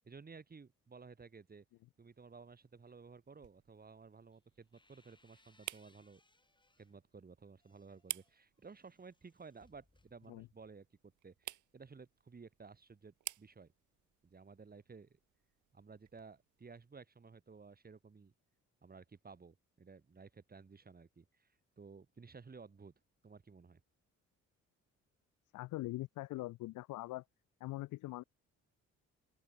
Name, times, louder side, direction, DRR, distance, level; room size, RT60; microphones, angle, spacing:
voice 1, 0.0-1.7 2.0-6.2 6.8-13.7 14.2-15.2 15.7-18.3 18.8-22.9 23.2-23.8, right 5 dB, 30° right, 3.4 m, -56 dB
sound 1, 2.1-16.9, right 13 dB, 75° right, 2.3 m, -53 dB
sound 2, 4.3-7.0 7.4-10.8, left 2 dB, 15° left, 5.8 m, -72 dB
voice 2, 25.5-27.2 27.6-28.2, left 18 dB, 90° left, 0.9 m, -42 dB
open air
cardioid pair, 90°, 30 cm